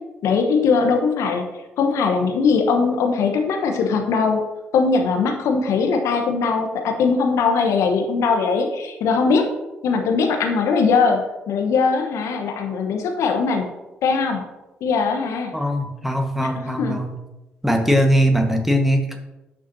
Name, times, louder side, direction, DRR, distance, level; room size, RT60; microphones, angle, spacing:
voice 1, 0.2-1.4 1.8-4.4 4.7-9.5 9.8-13.7 14.0-14.4 14.8-15.5 16.4-17.0, left 5 dB, 60° left, 4 dB, 1.1 m, -20 dB
voice 2, 15.5-17.1 17.6-19.2, equal, 5° right, 5 dB, 1.5 m, -20 dB
11.5 x 6.2 x 2.8 m, 1.0 s
figure-of-eight pair, 40°, 6 cm